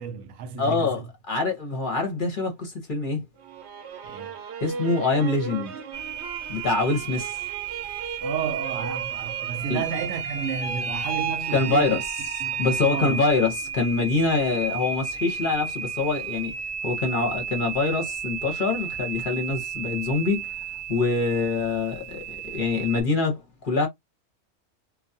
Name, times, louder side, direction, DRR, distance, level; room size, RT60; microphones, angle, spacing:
voice 1, 0.0-1.1 4.0-4.4 8.2-12.0 12.4-13.2, right 6 dB, 85° right, 1.0 m, -32 dB
voice 2, 0.6-1.0 1.3-3.2 4.6-5.7 6.5-7.4 9.7-9.8 11.5-12.0 12.6-16.5 16.8-23.9, left 3 dB, 50° left, 0.8 m, -25 dB
sound 1, 3.4-13.2 13.6-14.3, right 6 dB, 65° right, 0.9 m, -37 dB
sound 2, 5.9-23.0, right 6 dB, 45° right, 0.5 m, -33 dB
2.3 x 2.3 x 2.5 m
omnidirectional pair, 1.3 m